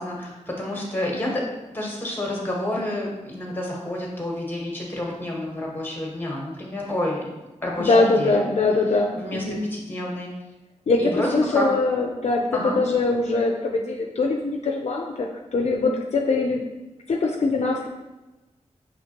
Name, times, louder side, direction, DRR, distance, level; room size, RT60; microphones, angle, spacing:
voice 1, 0.0-7.2 7.6-8.5 9.2-9.4 9.7-10.3 11.0-11.7 12.5-12.8, left 1 dB, 15° left, -2 dB, 1.1 m, -29 dB
voice 2, 7.8-9.6 10.9-16.6 17.1-17.9, left 3 dB, 60° left, 1 dB, 0.4 m, -22 dB
5.8 x 3.1 x 2.9 m, 1.1 s
wide cardioid pair, 115°, 13 cm